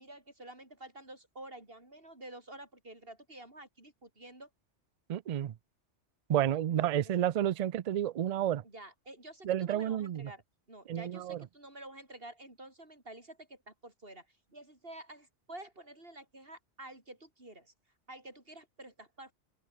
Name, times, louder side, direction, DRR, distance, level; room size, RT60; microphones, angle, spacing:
voice 1, 0.0-4.5 6.7-7.5 8.6-10.4 10.7-17.7 18.1-19.3, right 1 dB, 50° right, 6.1 m, -50 dB
voice 2, 5.1-5.5 6.3-8.6 9.4-10.3 10.9-11.4, right 11 dB, 80° right, 0.3 m, -30 dB
open air
omnidirectional pair, 1.2 m